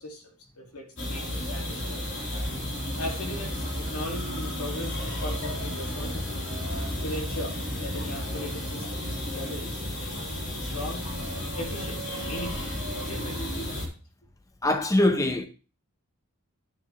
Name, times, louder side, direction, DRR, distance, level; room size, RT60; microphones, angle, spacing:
voice 1, 0.0-2.2 3.0-6.4 7.0-11.1 11.6-12.7 13.0-13.8, left 1 dB, 90° left, 2.0 m, -39 dB
sound 1, 1.0-13.9, left 1 dB, 55° left, 3.3 m, -32 dB
voice 2, 14.6-15.4, left 1 dB, 15° left, 0.6 m, -22 dB
10.5 x 6.5 x 3.0 m
head